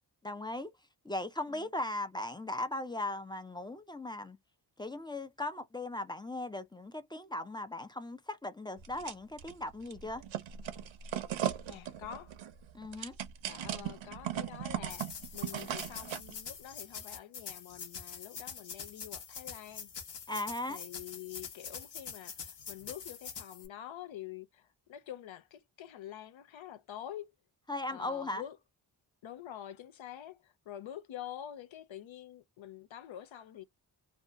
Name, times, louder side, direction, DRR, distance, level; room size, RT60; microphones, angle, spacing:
voice 1, 0.2-0.7 1.0-4.4 4.8-10.2 12.7-13.2 20.3-20.8 27.7-28.4, left 2 dB, 10° left, 0.3 m, -38 dB
sound 1, 8.8-9.5 9.9-16.3, right 10 dB, 85° right, 0.7 m, -38 dB
voice 2, 11.7-12.3 13.5-15.0 15.3-19.9 20.7-27.3 27.9-28.6 29.2-33.6, left 11 dB, 90° left, 0.7 m, -47 dB
sound 2, 14.9-23.7, left 6 dB, 60° left, 1.0 m, -45 dB
2.6 x 2.2 x 3.5 m
wide cardioid pair, 110°, 45 cm